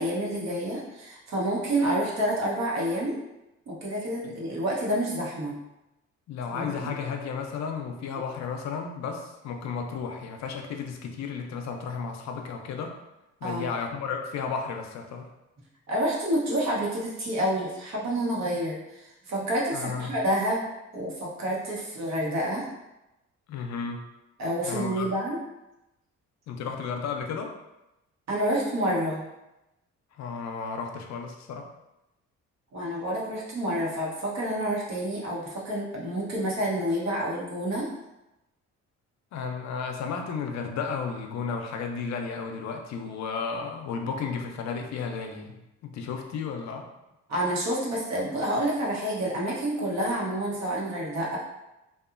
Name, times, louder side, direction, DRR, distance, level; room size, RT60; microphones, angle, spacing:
voice 1, 0.0-3.2 3.7-5.6 6.5-6.9 13.4-13.7 15.9-19.0 19.3-22.7 24.4-25.4 28.3-29.2 32.7-37.9 47.3-51.4, right 1 dB, 65° right, -4 dB, 1.0 m, -28 dB
voice 2, 6.3-13.0 13.4-15.3 19.7-20.1 23.5-24.0 24.7-25.1 26.5-27.6 30.2-31.7 39.3-45.5 45.8-46.9, left 5 dB, 65° left, 3 dB, 0.5 m, -33 dB
2.8 x 2.3 x 2.4 m, 0.93 s
cardioid pair, 90°, 30 cm